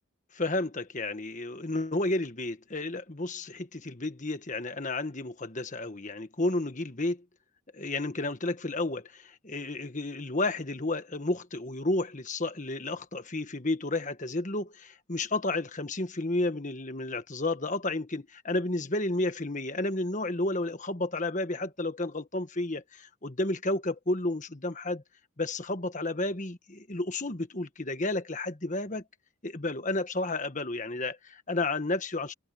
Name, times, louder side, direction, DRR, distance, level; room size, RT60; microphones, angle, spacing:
voice 1, 0.3-7.2 7.7-25.0 25.4-29.0 29.4-32.3, left 2 dB, 35° left, 1.5 m, -31 dB
head